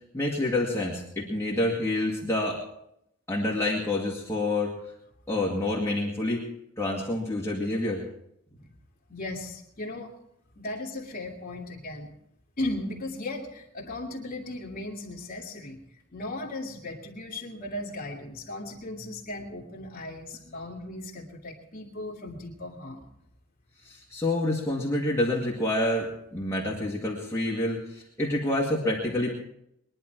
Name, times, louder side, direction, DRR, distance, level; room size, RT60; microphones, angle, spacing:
voice 1, 0.1-2.6 3.3-4.7 5.3-6.4 6.8-8.0 23.8-29.3, left 1 dB, 15° left, -5 dB, 2.1 m, -28 dB
voice 2, 9.1-10.1 10.6-12.1 12.6-15.8 16.1-23.1, left 2 dB, 45° left, -7 dB, 2.2 m, -36 dB
22.0 x 11.0 x 4.6 m, 0.77 s
head